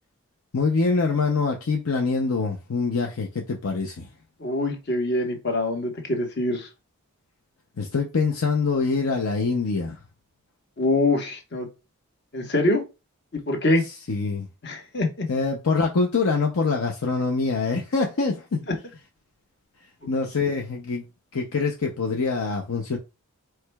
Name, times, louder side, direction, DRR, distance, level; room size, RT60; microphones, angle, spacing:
voice 1, 0.5-4.1 7.8-10.0 14.1-14.5 15.3-18.6 20.1-21.0 21.3-23.0, left 4 dB, 70° left, 0.6 m, -24 dB
voice 2, 4.4-6.7 10.8-11.7 12.3-12.8 13.3-13.8 14.6-15.3 18.7-18.8, left 2 dB, 50° left, 1.1 m, -24 dB
4.7 x 4.5 x 2.3 m
head